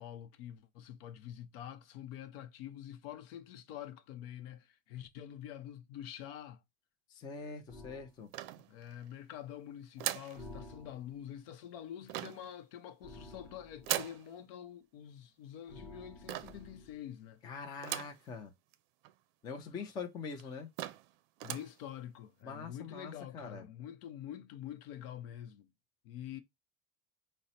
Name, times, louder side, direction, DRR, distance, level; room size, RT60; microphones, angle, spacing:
voice 1, 0.0-6.6 8.7-17.4 21.4-25.7 26.0-26.4, left 10 dB, 70° left, 0.7 m, -46 dB
voice 2, 7.1-8.3 17.4-18.5 19.4-20.7 22.4-23.7, left 5 dB, 15° left, 0.4 m, -43 dB
sound 1, 7.7-8.1 10.4-11.3 13.0-14.1 15.7-17.1, left 1 dB, ahead, 0.8 m, -52 dB
sound 2, 8.3-9.1 10.0-10.4 12.1-12.5 13.8-14.2 16.3-16.7 17.8-18.2 18.7-18.8 19.0-19.1 19.9-20.0 20.4-20.5 20.8-21.1 21.4-21.7, right 14 dB, 75° right, 0.5 m, -38 dB
5.0 x 2.1 x 4.1 m
cardioid pair, 180°, 30 cm